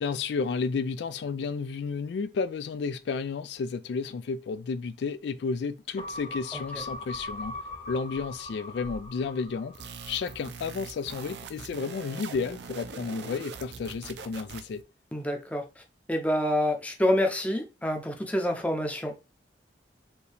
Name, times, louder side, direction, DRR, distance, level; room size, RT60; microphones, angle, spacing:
voice 1, 0.0-7.6 7.9-9.7 10.1-14.8, left 5 dB, 70° left, 0.3 m, -32 dB
sound 1, 6.0-10.6 11.0-11.1, left 1 dB, 45° left, 1.4 m, -41 dB
sound 2, 9.7-14.8, right 5 dB, 70° right, 0.5 m, -43 dB
voice 2, 15.1-15.7 16.1-19.1, left 1 dB, 10° left, 0.6 m, -27 dB
4.4 x 2.8 x 3.4 m
head